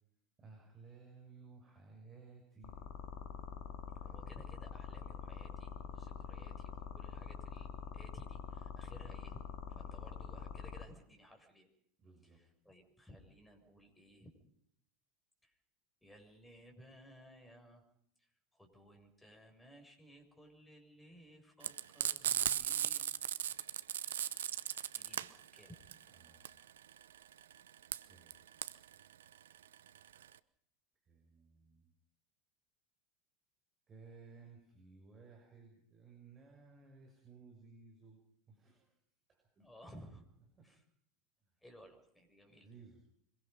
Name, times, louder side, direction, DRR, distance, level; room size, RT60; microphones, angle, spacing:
voice 1, 0.4-2.8 3.9-4.2 9.8-10.2 12.0-12.4 26.1-26.6 28.1-28.5 31.0-31.9 33.9-38.2 38.5-38.9 39.3-39.7 40.6-40.7 42.6-43.0, right 4 dB, 25° right, 1 dB, 6.7 m, -58 dB
sound 1, 2.6-10.8, left 8 dB, 50° left, 2.2 m, -45 dB
voice 2, 4.0-9.4 9.7-11.7 12.2-14.4 15.4-15.6 16.0-17.8 18.2-23.1 24.9-25.9 39.6-40.2 40.6-40.8 41.6-42.7, equal, 5° left, 3 dB, 6.8 m, -58 dB
Frying (food), 21.6-30.4, right 10 dB, 70° right, 0.8 m, -37 dB
25.0 x 22.0 x 5.3 m, 0.70 s
figure-of-eight pair, 85°, 0 cm